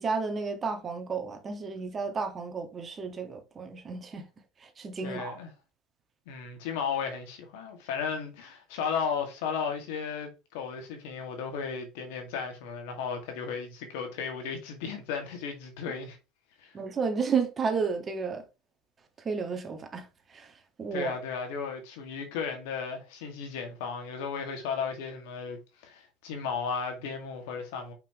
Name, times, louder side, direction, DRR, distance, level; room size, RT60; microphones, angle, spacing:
voice 1, 0.0-4.2 4.6-5.4 16.7-18.4 19.2-21.1, right 5 dB, 30° right, 1.5 m, -32 dB
voice 2, 5.0-5.5 6.3-16.2 16.6-16.8 20.9-27.9, left 6 dB, 80° left, 2.0 m, -35 dB
5.8 x 5.5 x 3.0 m
supercardioid pair, 100°, 0 cm